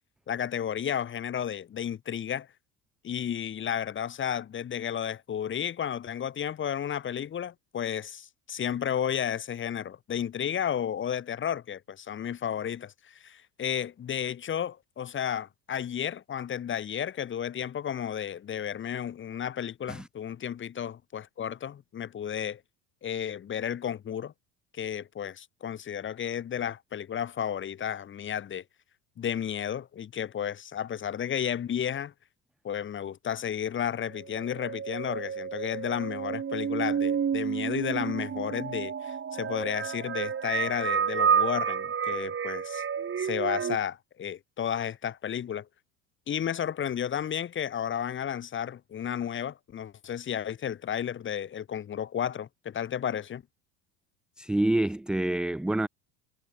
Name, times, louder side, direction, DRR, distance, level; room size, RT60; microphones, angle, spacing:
voice 1, 0.3-2.5 3.0-22.6 23.0-24.3 24.7-28.6 29.2-32.1 32.6-42.8 43.2-45.7 46.3-53.4, left 9 dB, 25° left, 1.0 m, -32 dB
sound 1, 34.1-43.8, right 7 dB, 30° right, 2.9 m, -30 dB
voice 2, 54.4-55.9, right 1 dB, ahead, 0.3 m, -27 dB
hypercardioid pair, 85°, 44 cm